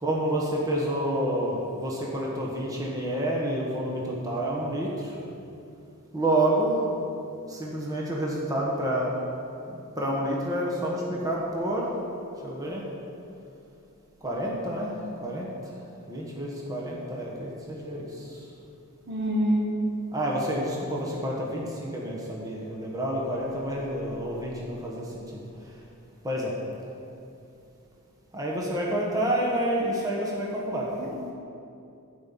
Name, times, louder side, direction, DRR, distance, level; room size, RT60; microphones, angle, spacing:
voice 1, 0.0-4.9 6.1-6.8 7.5-9.1 10.0-11.9 12.4-12.8 14.2-14.9 15.2-15.5 16.1-18.1 20.1-21.6 21.9-25.0 26.2-26.5 28.3-30.9, right 1 dB, 15° right, -4 dB, 1.4 m, -28 dB
voice 2, 19.1-19.7 31.0-31.3, equal, 55° right, -1 dB, 1.7 m, -26 dB
11.5 x 5.5 x 8.6 m, 2.6 s
head